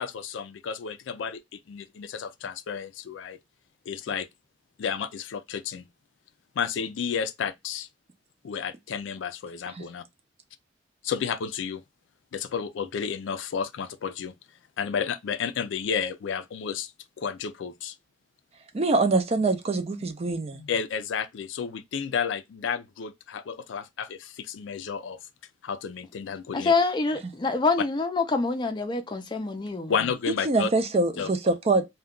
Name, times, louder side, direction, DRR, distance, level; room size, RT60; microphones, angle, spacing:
voice 1, 0.0-3.4 3.9-4.3 4.8-5.8 6.6-7.9 8.4-10.0 11.0-11.8 12.3-14.3 14.8-16.9 17.2-17.9 20.3-25.2 25.6-26.7 29.9-30.7 31.2-31.3, left 6 dB, 80° left, 0.4 m, -31 dB
voice 2, 18.7-20.6 30.5-31.9, right 3 dB, 35° right, 0.4 m, -24 dB
voice 3, 26.5-29.9 31.2-31.3, left 3 dB, 25° left, 0.4 m, -26 dB
2.2 x 2.2 x 3.6 m
head